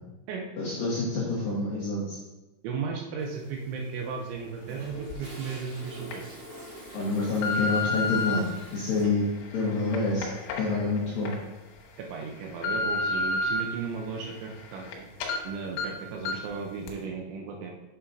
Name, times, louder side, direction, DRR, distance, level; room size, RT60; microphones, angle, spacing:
voice 1, 0.6-2.2 6.9-8.4 8.7-9.2 9.5-10.3 10.6-11.3, left 3 dB, 75° left, -7 dB, 2.1 m, -27 dB
voice 2, 2.6-6.2 9.0-9.1 12.0-15.1 15.4-17.7, right 5 dB, 80° right, 0 dB, 2.8 m, -35 dB
Toilet flush, 3.9-9.0, right 1 dB, 55° right, 1.4 m, -46 dB
sound 1, 5.1-5.2 5.8-6.1 6.8-8.4 9.1-11.4 11.8-11.9 12.3-13.6 14.1-14.9 15.2-15.4 15.8-15.9 16.3-16.5 16.9-17.0, left 2 dB, 90° left, 3.8 m, -31 dB
8.2 x 7.0 x 2.6 m, 1.1 s
omnidirectional pair, 5.9 m